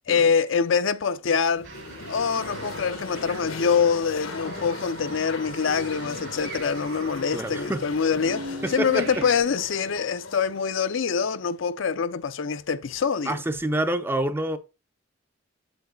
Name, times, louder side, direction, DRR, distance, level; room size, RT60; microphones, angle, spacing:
voice 1, 0.1-1.7 2.1-13.4, left 6 dB, 65° left, 0.5 m, -25 dB
sound 1, 1.5-11.6, left 3 dB, 90° left, 1.2 m, -39 dB
sound 2, 1.6-9.4, right 2 dB, 60° right, 2.1 m, -40 dB
voice 2, 7.3-7.8 8.6-9.1 13.3-14.6, right 1 dB, 10° right, 0.5 m, -27 dB
7.9 x 7.5 x 2.2 m
head